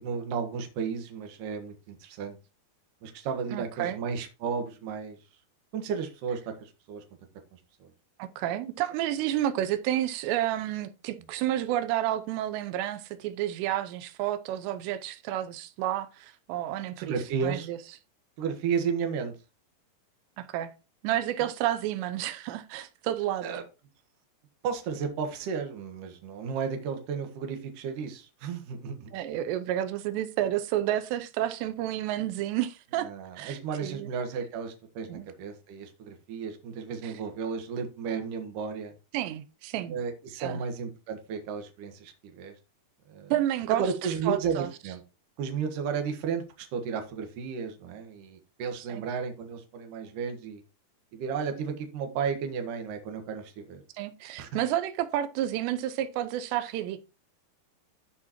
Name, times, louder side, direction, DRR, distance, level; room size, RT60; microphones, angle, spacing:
voice 1, 0.0-2.4 3.0-5.2 5.7-7.0 7.5-7.9 17.0-17.7 18.4-19.3 23.4-23.6 24.6-29.1 33.0-38.9 39.9-42.6 43.1-43.3 43.7-45.0 45.4-50.6 51.1-53.8 54.4-54.5, right 6 dB, 60° right, 2.6 m, -33 dB
voice 2, 3.5-4.0 8.2-17.1 17.4-17.8 20.4-20.7 21.0-23.5 29.1-33.1 33.4-34.1 35.1-35.3 37.0-37.1 39.1-40.0 40.4-40.6 43.3-43.8 44.3-44.7 48.8-49.0 53.9-57.0, right 12 dB, 90° right, 2.9 m, -30 dB
14.0 x 5.0 x 3.0 m
omnidirectional pair, 4.9 m